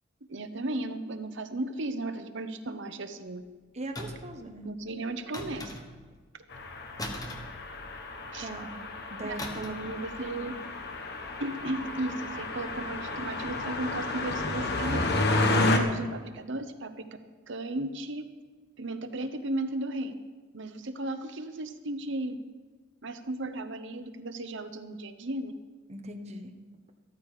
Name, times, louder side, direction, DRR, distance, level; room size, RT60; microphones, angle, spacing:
voice 1, 0.3-3.4 4.6-5.8 8.3-8.5 9.2-10.5 11.4-15.2 15.8-17.1 17.5-18.2 18.8-20.2 20.5-22.4 23.0-25.5, right 2 dB, 65° right, 9 dB, 1.0 m, -35 dB
voice 2, 3.7-4.7 8.4-8.7 9.1-9.9 10.4-10.5 25.9-26.5, right 1 dB, 35° right, 5 dB, 1.3 m, -40 dB
sound 1, 3.9-4.4 5.3-6.1 7.0-8.2 9.4-9.9 10.1-10.4, left 1 dB, 20° left, 1.3 m, -39 dB
sound 2, 6.5-15.8, left 2 dB, 55° left, 1.4 m, -31 dB
14.0 x 13.5 x 5.0 m, 1.4 s
head